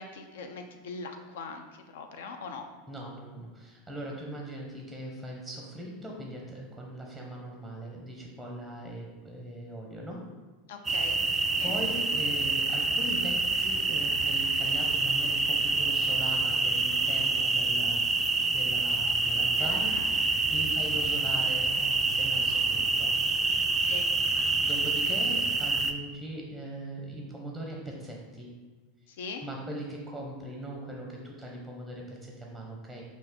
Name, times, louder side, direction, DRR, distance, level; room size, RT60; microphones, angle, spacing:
voice 1, 0.0-2.7 10.7-11.8 19.6-20.3 23.8-24.1 29.1-29.4, left 4 dB, 65° left, 5 dB, 0.5 m, -41 dB
voice 2, 2.9-10.3 11.3-23.1 24.6-28.6 29.4-33.0, right 1 dB, 5° left, -1 dB, 0.8 m, -40 dB
sound 1, 10.8-25.9, right 3 dB, 20° right, 0.3 m, -27 dB
5.3 x 2.5 x 3.7 m, 1.3 s
figure-of-eight pair, 85°, 0 cm